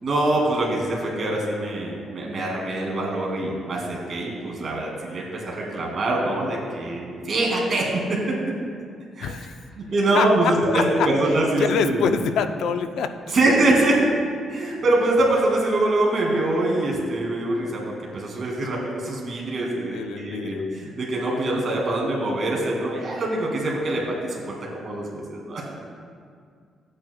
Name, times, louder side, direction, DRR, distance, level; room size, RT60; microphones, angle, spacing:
voice 1, 0.0-8.2 9.2-9.3 9.8-12.1 13.3-14.0 14.5-25.7, right 2 dB, 45° right, -3 dB, 2.2 m, -24 dB
voice 2, 9.2-9.5 10.1-10.3 10.7-11.1 11.6-13.4 14.6-14.7 19.9-20.7, left 7 dB, 80° left, 8 dB, 0.4 m, -26 dB
13.5 x 8.7 x 2.2 m, 2.2 s
cardioid pair, 140°, 0 cm